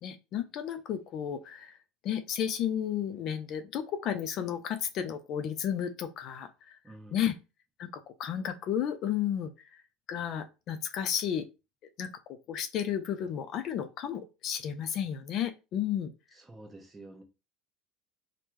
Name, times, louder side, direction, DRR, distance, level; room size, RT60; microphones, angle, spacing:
voice 1, 0.0-1.8 2.0-6.8 7.1-7.3 7.8-9.8 10.1-11.5 12.0-12.1 12.5-16.1, left 9 dB, 50° left, 0.4 m, -33 dB
voice 2, 6.8-7.3 16.3-17.2, right 2 dB, 15° right, 0.8 m, -49 dB
3.4 x 2.0 x 3.0 m
supercardioid pair, 120°, 0 cm